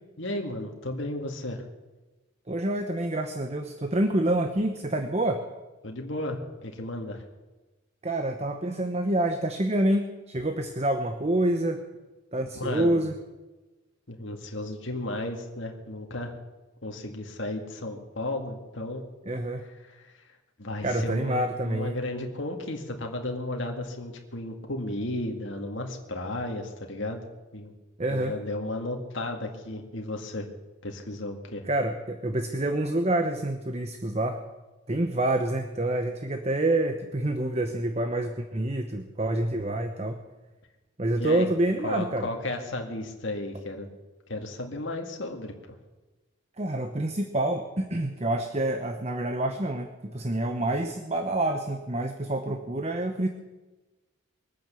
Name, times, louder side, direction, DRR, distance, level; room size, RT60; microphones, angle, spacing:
voice 1, 0.2-1.6 5.8-7.2 12.6-13.0 14.1-16.4 16.8-19.1 19.9-20.3 20.6-27.3 27.5-27.7 28.1-30.5 30.8-31.6 41.1-41.5 41.8-43.9 44.3-45.5, left 1 dB, 60° left, 2 dB, 2.0 m, -34 dB
voice 2, 2.5-5.4 8.0-11.8 12.3-13.1 19.3-19.7 20.8-22.0 28.0-28.4 31.6-34.4 34.9-40.2 41.0-42.3 46.6-53.3, right 1 dB, 30° right, 7 dB, 0.9 m, -27 dB
22.0 x 9.4 x 6.9 m, 1.2 s
head